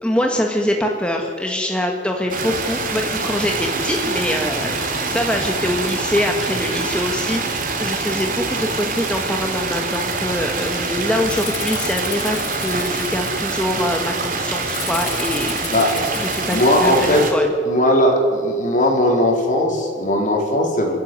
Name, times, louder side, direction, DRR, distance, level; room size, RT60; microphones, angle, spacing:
voice 1, 0.0-17.5, left 1 dB, 5° left, 2 dB, 1.5 m, -24 dB
sound 1, 2.3-17.3, right 3 dB, 45° right, 3.1 m, -25 dB
Rattle (instrument), 11.2-13.9 14.7-16.9, left 10 dB, 65° left, 2.3 m, -34 dB
voice 2, 16.5-17.2 17.6-21.0, left 1 dB, 45° left, 1 dB, 4.4 m, -18 dB
27.5 x 13.0 x 9.6 m, 2.2 s
head